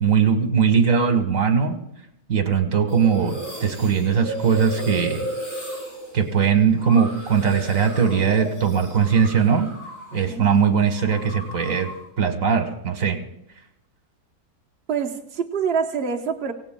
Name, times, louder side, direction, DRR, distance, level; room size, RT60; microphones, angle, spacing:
voice 1, 0.0-1.8 2.3-5.3 6.1-9.7 10.1-11.9 12.2-13.2, right 6 dB, 60° right, 6 dB, 1.7 m, -20 dB
sound 1, 2.9-10.3 10.5-12.1, right 1 dB, 85° left, 8.1 m, -35 dB
voice 2, 10.1-10.5 14.9-16.5, right 6 dB, 45° right, 0 dB, 1.1 m, -26 dB
25.5 x 17.0 x 2.2 m, 0.81 s
omnidirectional pair, 1.6 m